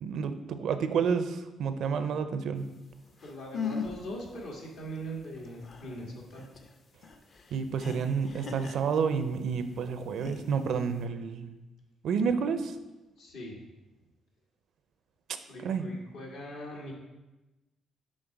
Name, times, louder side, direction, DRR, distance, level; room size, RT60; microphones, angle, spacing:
voice 1, 0.0-2.7 7.5-11.5 12.0-12.7 15.6-15.8, right 6 dB, 70° right, 10 dB, 0.5 m, -30 dB
sound 1, 2.9-3.0 3.2-4.1 4.4-4.5 4.9-9.4 10.0-11.0, left 5 dB, 55° left, 0.7 m, -39 dB
voice 2, 3.2-6.4 13.2-13.6 15.5-16.9, right 1 dB, 80° left, -2 dB, 1.6 m, -41 dB
6.4 x 3.6 x 4.6 m, 1.1 s
supercardioid pair, 70°, 0 cm